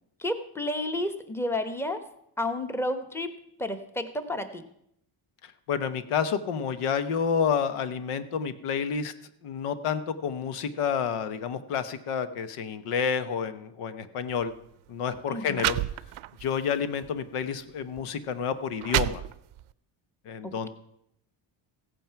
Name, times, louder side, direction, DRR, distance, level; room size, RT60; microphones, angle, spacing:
voice 1, 0.2-2.0 2.4-3.3 3.6-4.6 15.3-15.7 20.4-20.7, left 1 dB, 5° left, 9 dB, 1.0 m, -31 dB
voice 2, 5.4-9.1 9.4-14.5 14.9-15.8 16.4-19.2 20.3-20.7, left 7 dB, 90° left, 11 dB, 1.1 m, -29 dB
sound 1, 14.3-14.5 15.2-15.3 15.5-16.5 17.0-17.2 18.0-18.1 18.6-19.7, right 15 dB, 75° right, 0.6 m, -29 dB
15.5 x 9.1 x 5.8 m, 0.75 s
cardioid pair, 120°, 50 cm